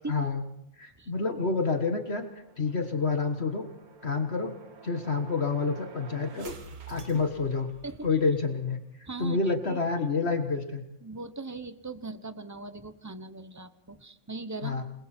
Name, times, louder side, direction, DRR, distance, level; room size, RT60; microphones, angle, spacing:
voice 1, 0.1-0.4 0.8-2.3 2.6-3.7 4.0-4.5 4.8-6.5 6.9-7.7 8.0-8.8 9.2-10.8 14.6-14.8, left 4 dB, 45° left, 5 dB, 1.8 m, -28 dB
sound 1, 1.5-8.3, right 4 dB, 90° right, 2.1 m, -49 dB
voice 2, 9.1-9.8 11.0-14.8, right 3 dB, 15° right, 11 dB, 0.8 m, -40 dB
28.5 x 21.5 x 4.5 m, 0.77 s
omnidirectional pair, 1.5 m